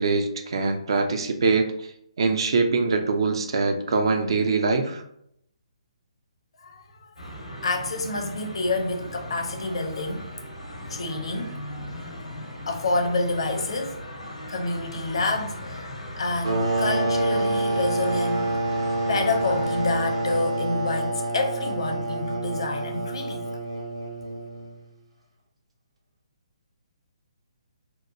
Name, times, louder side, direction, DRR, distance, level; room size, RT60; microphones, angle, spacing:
voice 1, 0.0-1.7 2.2-5.0, right 4 dB, 50° right, 0.4 m, -23 dB
voice 2, 6.6-7.2 7.6-10.3 10.9-11.8 12.7-14.0 14.5-15.8 16.2-18.6 19.1-23.5, left 2 dB, 55° left, 0.5 m, -28 dB
sound 1, 7.2-20.4, left 1 dB, 85° left, 0.9 m, -38 dB
sound 2, 16.4-24.8, right 2 dB, 65° right, 0.8 m, -27 dB
2.9 x 2.2 x 2.5 m
figure-of-eight pair, 135°, 3 cm